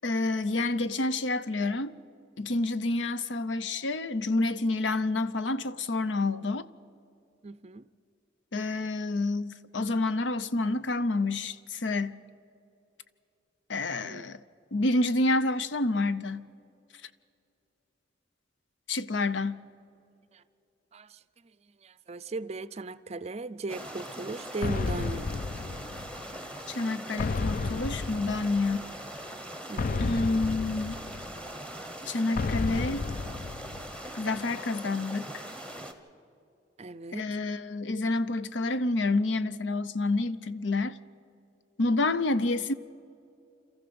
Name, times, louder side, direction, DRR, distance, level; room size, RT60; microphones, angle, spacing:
voice 1, 0.0-2.0 2.4-6.7 8.5-12.2 13.7-14.4 14.7-16.5 18.9-19.6 26.7-28.9 30.0-31.0 32.1-33.1 34.2-35.4 37.1-41.0 41.8-42.7, left 2 dB, 75° left, 0.7 m, -28 dB
voice 2, 7.4-7.9 14.0-14.2 20.3-20.4 20.9-21.2 21.8-25.3 29.7-30.1 36.8-37.3, right 3 dB, 35° right, 0.4 m, -38 dB
sound 1, 23.7-35.9, right 1 dB, 5° left, 1.2 m, -41 dB
sound 2, 24.6-26.4 27.2-28.9 29.8-31.6 32.4-34.1, left 4 dB, 45° left, 0.4 m, -32 dB
27.0 x 14.5 x 6.9 m
head